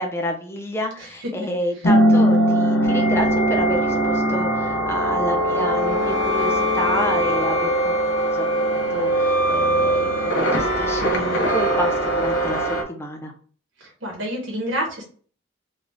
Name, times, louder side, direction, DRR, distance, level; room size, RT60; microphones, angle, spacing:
voice 1, 0.0-13.3, equal, 15° left, 2 dB, 0.8 m, -29 dB
voice 2, 1.0-1.3 13.8-15.0, equal, 80° right, 0 dB, 1.4 m, -28 dB
sound 1, 1.8-12.8, right 1 dB, 70° left, 0.9 m, -20 dB
4.0 x 2.4 x 3.5 m, 0.42 s
head